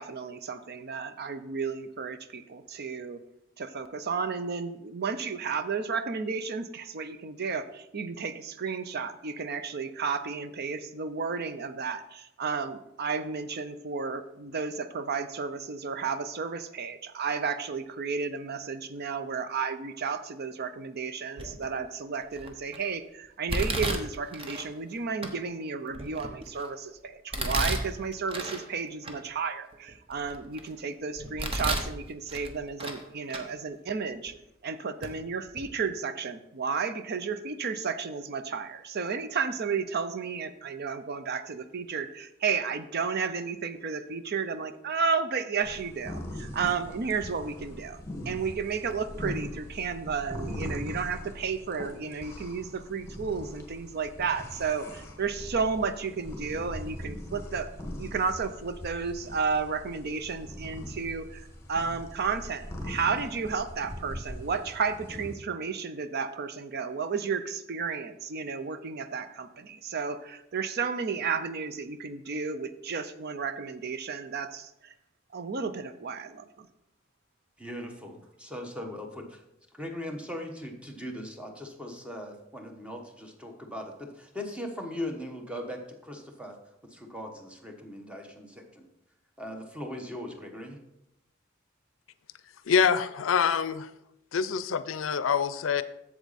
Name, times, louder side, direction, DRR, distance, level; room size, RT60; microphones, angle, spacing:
voice 1, 0.0-3.2 3.6-34.3 34.6-48.0 48.3-57.7 58.0-61.4 61.7-74.9 75.3-76.7, right 5 dB, 55° right, 11 dB, 0.6 m, -32 dB
Domestic sounds home sounds, 21.4-21.8 22.3-22.8 23.5-24.7 25.2-25.3 25.9-26.7 27.3-28.6 29.0-29.1 29.7-30.7 31.2-31.9 32.3-33.0 33.3-33.4 34.3-34.4 35.0-35.1 35.5-35.7, right 1 dB, 30° right, 1.0 m, -32 dB
sound 1, 45.6-65.3, left 1 dB, 15° left, 1.6 m, -41 dB
voice 2, 77.6-79.4 79.7-86.6 86.9-88.9 89.4-90.8, left 1 dB, 5° right, 3 dB, 1.1 m, -39 dB
voice 3, 92.7-93.9 94.3-95.8, left 6 dB, 75° left, 14 dB, 0.5 m, -25 dB
8.1 x 7.3 x 4.1 m, 0.86 s
head